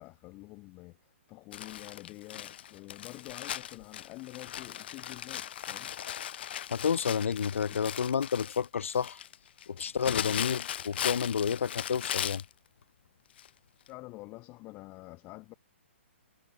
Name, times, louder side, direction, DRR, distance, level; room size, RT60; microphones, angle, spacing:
voice 1, 0.0-5.9 7.6-7.8 13.9-15.5, left 22 dB, 25° left, 1.2 m, -47 dB
Crumpling crinkling, 1.5-12.5 13.4-13.5 13.9-14.0, left 10 dB, 55° left, 2.0 m, -38 dB
voice 2, 6.7-9.2 9.7-12.4, left 7 dB, 80° left, 0.6 m, -30 dB
hypercardioid pair, 150°, 7 cm